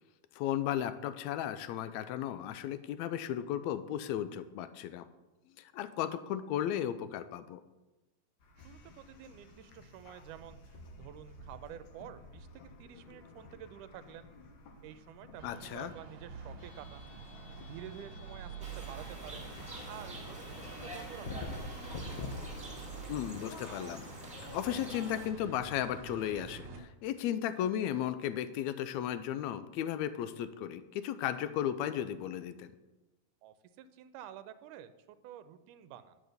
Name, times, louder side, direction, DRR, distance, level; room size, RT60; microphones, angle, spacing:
voice 1, 0.3-5.0 5.6-7.6 15.4-15.9 23.1-24.1 24.5-32.7, left 10 dB, 80° left, 12 dB, 1.6 m, -35 dB
sound 1, 8.4-24.8, left 3 dB, 65° left, 2.5 m, -50 dB
voice 2, 8.6-14.3 14.8-17.1 17.7-19.5 19.8-21.7 33.4-36.2, right 10 dB, 80° right, 12 dB, 2.1 m, -50 dB
sound 2, 15.4-26.8, right 5 dB, 60° right, 2.7 m, -47 dB
sound 3, 18.6-25.3, equal, 5° right, 1.7 m, -47 dB
11.0 x 6.3 x 6.7 m, 1.1 s
omnidirectional pair, 3.7 m